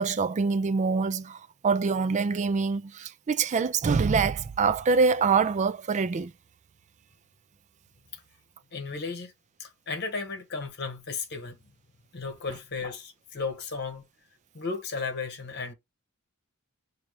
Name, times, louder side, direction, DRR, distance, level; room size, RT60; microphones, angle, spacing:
voice 1, 0.0-6.3, right 5 dB, 30° right, 0.3 m, -25 dB
voice 2, 8.7-9.3 9.6-11.6 12.1-14.0 14.5-15.7, left 4 dB, 50° left, 1.2 m, -34 dB
5.9 x 2.8 x 3.0 m
head